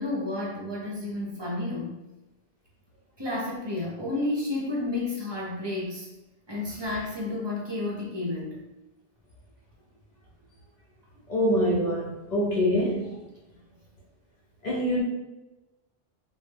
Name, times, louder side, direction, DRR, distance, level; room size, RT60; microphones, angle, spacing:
voice 1, 0.0-2.0 3.2-6.1 6.5-8.6, left 2 dB, 30° right, 0.5 m, -31 dB
voice 2, 11.3-13.0 14.6-15.0, equal, 50° left, 0.6 m, -25 dB
2.1 x 2.1 x 3.2 m
omnidirectional pair, 1.1 m